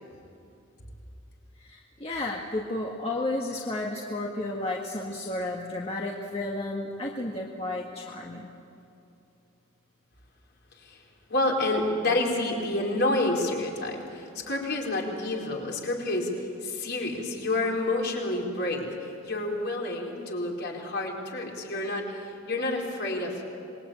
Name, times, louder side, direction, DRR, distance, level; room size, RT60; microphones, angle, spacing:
voice 1, 1.6-8.5, left 2 dB, 30° left, -2 dB, 1.8 m, -32 dB
voice 2, 11.3-18.9 19.2-23.5, left 2 dB, 55° left, -1 dB, 4.6 m, -29 dB
26.5 x 21.5 x 8.9 m, 2.7 s
head